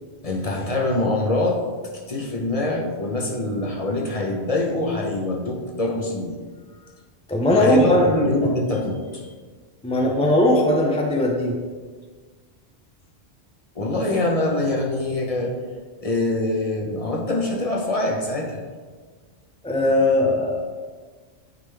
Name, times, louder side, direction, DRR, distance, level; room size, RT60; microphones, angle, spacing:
voice 1, 0.2-1.6 2.1-6.4 7.5-9.3 13.7-15.5 16.0-18.6, left 2 dB, 35° left, 0 dB, 0.9 m, -24 dB
voice 2, 7.3-8.1 9.8-11.5 19.6-20.6, left 1 dB, 10° left, 0 dB, 0.4 m, -19 dB
9.2 x 3.6 x 3.4 m, 1.5 s
omnidirectional pair, 1.2 m